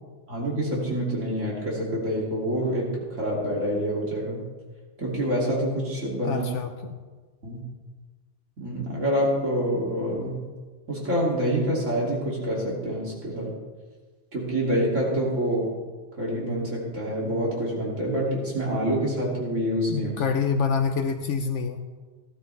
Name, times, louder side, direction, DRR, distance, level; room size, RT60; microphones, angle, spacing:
voice 1, 0.3-4.4 5.0-6.5 7.4-7.6 8.6-10.5 10.9-13.5 14.3-15.7 16.2-20.1, equal, 75° right, -4 dB, 3.1 m, -27 dB
voice 2, 6.2-7.0 19.9-22.0, left 6 dB, 70° left, 7 dB, 1.1 m, -27 dB
17.0 x 12.0 x 3.4 m, 1.4 s
omnidirectional pair, 1.3 m